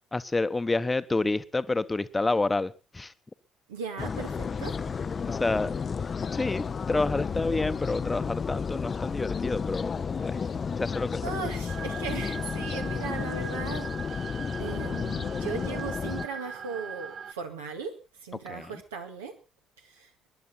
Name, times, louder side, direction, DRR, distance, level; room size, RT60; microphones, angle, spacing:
voice 1, 0.1-3.1 4.9-5.0 5.3-5.7 6.3-10.4 10.8-11.2 18.5-18.7, left 3 dB, 20° left, 14 dB, 1.0 m, -29 dB
voice 2, 3.7-4.7 11.2-13.9 14.6-18.0 18.2-19.4 19.8-20.1, right 5 dB, 75° right, 3 dB, 2.0 m, -37 dB
sound 1, 4.0-16.3, left 6 dB, 35° left, 0.7 m, -32 dB
sound 2, 11.7-17.3, right 6 dB, 50° right, 0.6 m, -41 dB
22.5 x 11.0 x 4.2 m, 0.33 s
figure-of-eight pair, 45°, 0 cm